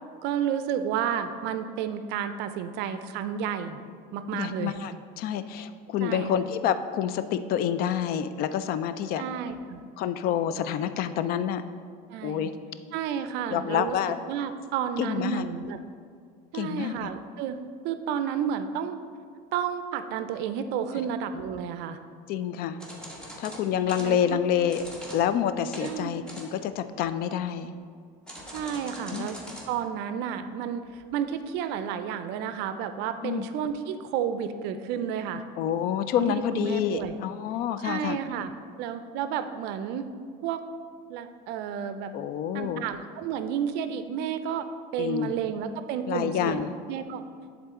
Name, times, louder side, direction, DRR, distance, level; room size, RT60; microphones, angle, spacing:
voice 1, 0.2-3.8 4.1-4.7 6.0-6.4 9.2-9.8 12.1-12.4 12.9-14.0 14.3-15.8 16.5-17.6 17.8-19.0 19.5-22.0 23.9-24.4 25.8-26.2 28.5-29.4 29.7-35.4 36.2-37.1 37.8-38.5 38.8-40.1 40.4-40.6 41.1-42.1 42.5-44.7 44.9-47.3, right 8 dB, 65° right, 10 dB, 0.5 m, -31 dB
voice 2, 4.3-9.2 10.0-11.6 12.2-12.5 13.5-14.2 15.0-15.5 16.5-17.1 22.3-22.8 23.4-24.8 25.1-27.7 29.1-29.3 33.2-33.5 35.6-38.2 42.1-42.8 45.0-45.3 46.1-46.7, left 9 dB, 55° left, 11 dB, 0.4 m, -28 dB
sound 1, 22.8-24.1 24.7-25.2 25.7-26.0 26.3-26.8 28.3-29.7 30.0-30.1 30.9-31.1 31.7-31.8, equal, 5° left, 1.1 m, -42 dB
10.5 x 3.7 x 3.6 m, 2.1 s
cardioid pair, 130°, 19 cm